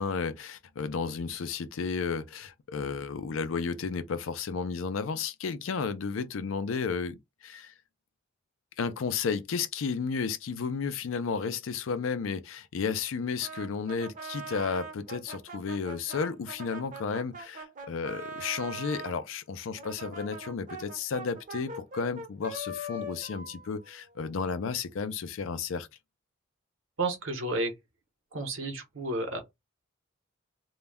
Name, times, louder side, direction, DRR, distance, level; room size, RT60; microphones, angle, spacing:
voice 1, 0.0-7.7 8.8-25.9, left 5 dB, 75° left, 0.4 m, -33 dB
Brass instrument, 13.4-19.2 19.8-24.5, right 1 dB, 40° right, 0.6 m, -42 dB
voice 2, 27.0-27.7 28.3-29.4, right 2 dB, 70° right, 0.8 m, -31 dB
2.2 x 2.1 x 3.4 m
head